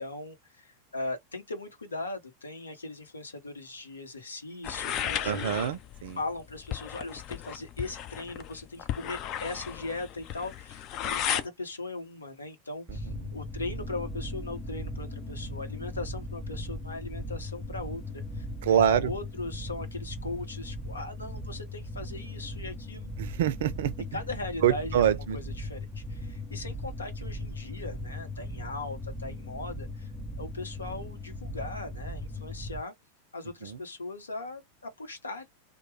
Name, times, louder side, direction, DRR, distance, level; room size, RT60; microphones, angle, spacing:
voice 1, 0.0-5.8 6.2-23.1 24.1-30.1 30.4-32.9 33.3-35.5, left 2 dB, 75° left, 0.9 m, -39 dB
sound 1, 4.6-11.5, left 10 dB, 35° left, 0.5 m, -35 dB
voice 2, 5.2-6.2 18.7-19.0 23.2-23.9 24.6-25.4, right 10 dB, 55° right, 0.5 m, -25 dB
sound 2, 12.9-32.8, left 1 dB, ahead, 0.8 m, -38 dB
3.0 x 2.1 x 3.2 m
figure-of-eight pair, 90°, 0 cm